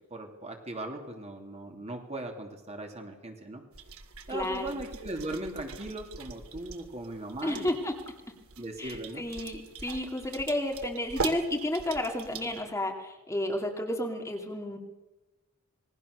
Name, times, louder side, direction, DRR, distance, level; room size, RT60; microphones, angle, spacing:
voice 1, 0.1-3.6 4.3-7.7 8.6-9.3, right 1 dB, 30° right, 3 dB, 2.9 m, -38 dB
sound 1, 3.7-12.6, right 4 dB, 70° right, 2.5 m, -42 dB
voice 2, 4.3-4.7 7.4-8.0 8.8-14.8, left 1 dB, 15° left, 2 dB, 2.5 m, -32 dB
27.5 x 21.5 x 6.7 m, 1.1 s
head